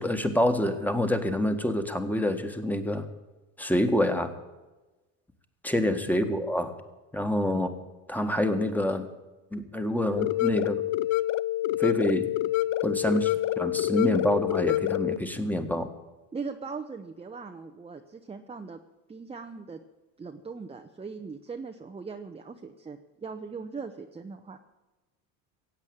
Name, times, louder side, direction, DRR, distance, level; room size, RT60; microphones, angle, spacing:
voice 1, 0.0-3.0 3.6-4.3 5.6-6.7 7.1-7.7 8.1-9.1 9.5-10.8 11.8-12.3 12.8-15.9, left 1 dB, 5° left, 7 dB, 1.7 m, -27 dB
voice 2, 6.0-6.4 7.4-7.6 16.3-18.8 19.1-19.8 20.2-24.6, right 5 dB, 15° right, 4 dB, 0.9 m, -40 dB
sound 1, 10.2-15.2, left 15 dB, 50° left, 0.5 m, -27 dB
16.0 x 8.3 x 8.7 m, 1.1 s
supercardioid pair, 90°, 38 cm